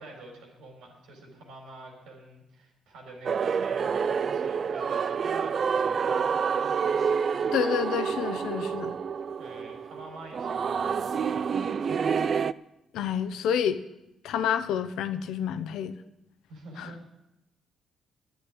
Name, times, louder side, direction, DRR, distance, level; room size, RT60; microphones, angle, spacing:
voice 1, 0.0-6.5 9.4-11.8 16.5-17.0, right 2 dB, 90° right, 1 dB, 4.5 m, -47 dB
sound 1, 3.3-12.5, right 6 dB, 50° right, 0.4 m, -28 dB
voice 2, 7.5-9.0 12.9-13.8 14.2-15.9 16.8-16.9, left 8 dB, 85° left, 11 dB, 0.9 m, -28 dB
10.5 x 8.2 x 9.8 m, 0.90 s
cardioid pair, 90°, 0 cm